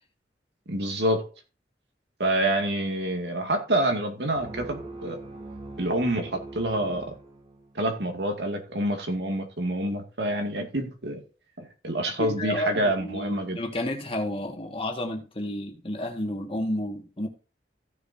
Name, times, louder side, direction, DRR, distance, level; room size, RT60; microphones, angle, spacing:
voice 1, 0.7-1.2 2.2-5.2 5.8-7.1 7.7-11.2 11.6-13.6, right 1 dB, 75° right, 2.2 m, -27 dB
sound 1, 4.4-7.9, right 2 dB, 35° right, 3.0 m, -42 dB
voice 2, 12.2-17.3, left 1 dB, 30° left, 1.9 m, -31 dB
15.5 x 6.8 x 2.8 m
head